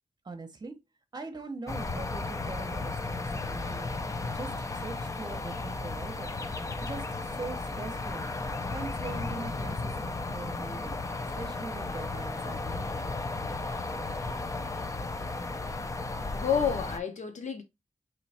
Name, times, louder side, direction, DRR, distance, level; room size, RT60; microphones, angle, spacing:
voice 1, 0.2-0.7 1.1-3.9 4.3-4.5 4.8-6.4 6.8-8.2 8.7-11.0 11.4-13.1, right 3 dB, 30° right, 0.9 m, -41 dB
sound 1, 1.7-17.0, left 3 dB, 25° left, 0.4 m, -34 dB
voice 2, 16.1-17.6, left 7 dB, 65° left, 0.8 m, -30 dB
3.1 x 2.9 x 4.2 m
wide cardioid pair, 140°, 13 cm